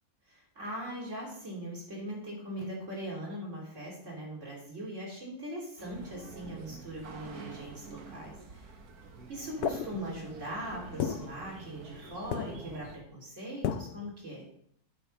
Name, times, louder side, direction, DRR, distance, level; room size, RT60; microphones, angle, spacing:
voice 1, 0.3-8.8 9.3-14.5, right 1 dB, 55° right, -3 dB, 3.5 m, -40 dB
sound 1, 5.8-13.0, right 4 dB, 80° right, 1.7 m, -47 dB
sound 2, 9.6-10.4 11.0-12.0 12.3-12.9 13.6-14.1, left 8 dB, 85° left, 1.1 m, -35 dB
8.5 x 5.2 x 6.3 m, 0.65 s
omnidirectional pair, 1.6 m